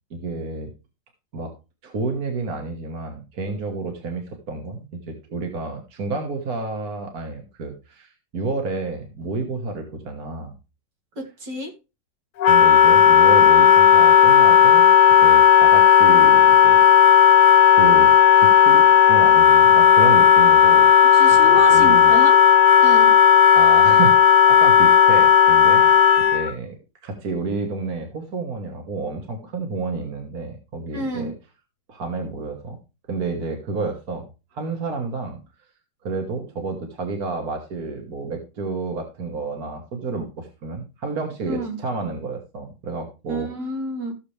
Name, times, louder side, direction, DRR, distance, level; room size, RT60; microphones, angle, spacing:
voice 1, 0.1-0.7 1.3-1.5 1.8-10.5 12.5-14.9 15.2-16.8 17.7-20.9 21.3-22.2 23.5-26.8 27.0-31.3 31.9-32.8 33.1-34.3 34.5-35.4 36.0-43.5, right 3 dB, 60° right, 4 dB, 2.0 m, -30 dB
voice 2, 11.2-11.7 21.1-22.4 22.8-23.2 30.9-31.4 41.5-41.8 43.3-44.1, right 1 dB, 85° right, 0 dB, 3.5 m, -29 dB
Wind instrument woodwind instrument, 12.4-26.5, left 9 dB, 70° left, 1.2 m, -13 dB
14.5 x 6.8 x 3.3 m, 0.29 s
omnidirectional pair, 1.9 m